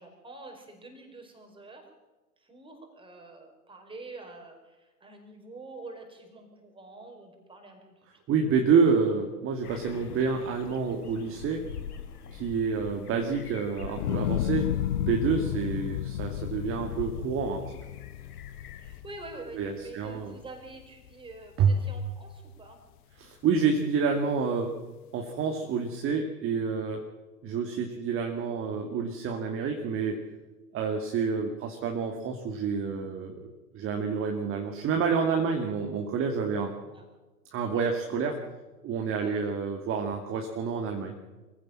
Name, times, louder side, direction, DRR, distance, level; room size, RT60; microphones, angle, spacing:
voice 1, 0.0-1.9 2.4-8.0 12.4-12.5 15.5-15.7 18.8-22.8 36.9-37.1 39.2-39.4, right 2 dB, 10° right, 3 dB, 4.9 m, -46 dB
voice 2, 8.3-11.6 12.3-17.8 19.5-20.3 21.6-21.8 23.2-24.7 25.1-27.0 27.4-30.2 30.7-36.7 37.5-38.4 38.8-41.1, right 5 dB, 25° right, 3 dB, 2.3 m, -28 dB
sound 1, 9.6-19.0, left 8 dB, 65° left, 2.7 m, -41 dB
sound 2, 14.0-20.3 20.7-21.3, left 14 dB, 30° left, 0.6 m, -33 dB
23.5 x 16.0 x 7.4 m, 1.2 s
figure-of-eight pair, 110°, 48 cm